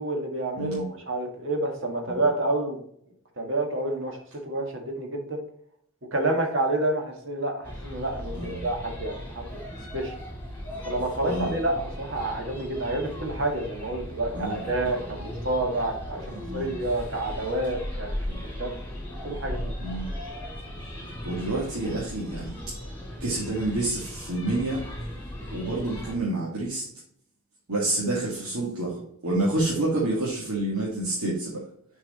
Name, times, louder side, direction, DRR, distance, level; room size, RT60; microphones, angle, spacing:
voice 1, 0.0-2.8 3.4-4.2 4.4-5.4 6.1-9.6 9.9-10.1 10.8-16.2 16.5-18.1 18.4-18.7 19.2-19.6, right 2 dB, 60° right, 2 dB, 1.7 m, -28 dB
voice 2, 0.6-0.9 2.1-2.2 8.3-8.6 11.2-11.5 14.3-14.7 16.3-16.8 18.3-18.4 19.8-20.1 21.3-22.6 23.2-24.8 25.5-26.9 27.7-31.6, right 2 dB, 90° right, -5 dB, 1.9 m, -28 dB
sound 1, 7.6-26.2, equal, 10° left, 2.5 m, -37 dB
6.6 x 4.7 x 4.1 m, 0.65 s
head